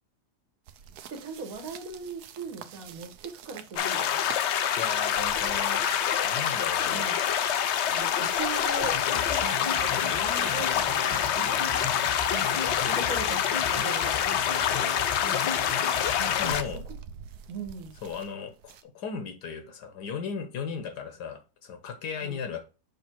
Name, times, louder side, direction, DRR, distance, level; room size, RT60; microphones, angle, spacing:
sound 1, 0.7-18.8, right 7 dB, 70° right, 1.1 m, -47 dB
voice 1, 1.1-4.2 6.9-7.2 7.9-11.9 12.8-14.2 17.5-17.9 22.2-22.4, right 4 dB, 55° right, 3 dB, 1.6 m, -39 dB
sound 2, 3.8-16.6, left 9 dB, 90° left, 0.6 m, -26 dB
voice 2, 4.8-5.8 6.2-7.1 14.6-15.0 16.2-16.8 18.0-22.6, left 6 dB, 70° left, 7 dB, 1.5 m, -36 dB
sound 3, 8.8-16.5, left 5 dB, 30° left, 0.7 m, -37 dB
6.6 x 3.4 x 4.5 m, 0.31 s
omnidirectional pair, 1.9 m